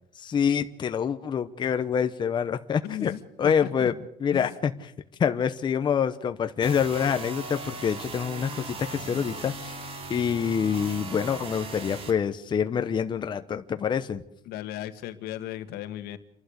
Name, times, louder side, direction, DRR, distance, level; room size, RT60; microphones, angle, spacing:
voice 1, 0.1-3.1 3.4-3.9 4.2-4.7 5.2-9.8 10.1-14.2, left 7 dB, 30° left, 8 dB, 0.9 m, -26 dB
voice 2, 2.8-3.9 4.3-4.5 14.4-16.2, left 13 dB, 75° left, 10 dB, 1.8 m, -36 dB
sound 1, 6.6-12.1, right 3 dB, 35° right, 3.3 m, -38 dB
29.0 x 12.0 x 8.1 m, 0.74 s
cardioid pair, 155°, 16 cm